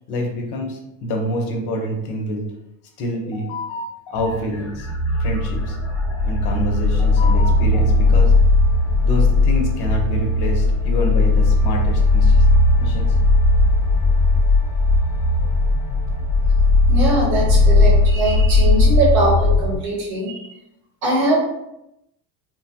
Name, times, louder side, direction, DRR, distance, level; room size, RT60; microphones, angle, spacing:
voice 1, 0.1-2.4 3.0-4.9 5.2-5.8 6.2-8.3 9.0-12.5 12.8-13.1, equal, 55° left, 1 dB, 1.0 m, -27 dB
sound 1, 4.2-19.8, left 2 dB, 30° left, 1.0 m, -17 dB
voice 2, 16.9-20.5 21.0-21.4, right 1 dB, 85° right, -4 dB, 1.3 m, -21 dB
3.0 x 2.3 x 2.8 m, 0.85 s
supercardioid pair, 90°, 48 cm